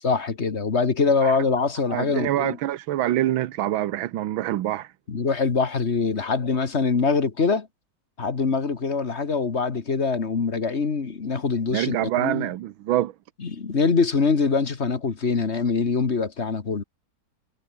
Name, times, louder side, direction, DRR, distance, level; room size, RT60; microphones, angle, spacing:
voice 1, 0.0-2.6 5.1-7.7 8.2-12.5 13.4-16.8, left 4 dB, 35° left, 1.7 m, -24 dB
voice 2, 1.9-4.9 11.7-13.1, right 13 dB, 90° right, 1.6 m, -25 dB
omnidirectional pair, 2.1 m